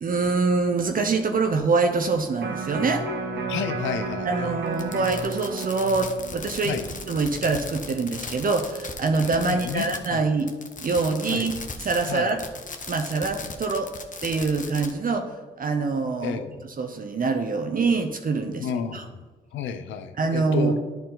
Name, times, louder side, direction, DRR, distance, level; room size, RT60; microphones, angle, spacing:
voice 1, 0.0-3.0 4.2-6.8 7.1-10.5 10.8-12.4 12.9-13.9 14.2-15.3 15.6-16.4 16.8-19.0 20.2-20.8, right 4 dB, 45° right, 6 dB, 0.8 m, -25 dB
Electric guitar, 2.4-8.6 9.0-9.1, right 3 dB, 65° right, 1.2 m, -33 dB
voice 2, 3.5-4.5 6.6-6.9 9.4-10.2 11.3-11.5 12.1-12.4 16.2-16.7 18.6-19.1 19.5-20.7, left 7 dB, 80° left, 9 dB, 0.7 m, -31 dB
Fireworks, 4.7-10.1 10.4-14.9, left 4 dB, 40° left, 1.0 m, -37 dB
10.5 x 4.3 x 3.9 m, 1.4 s
supercardioid pair, 50°, 19 cm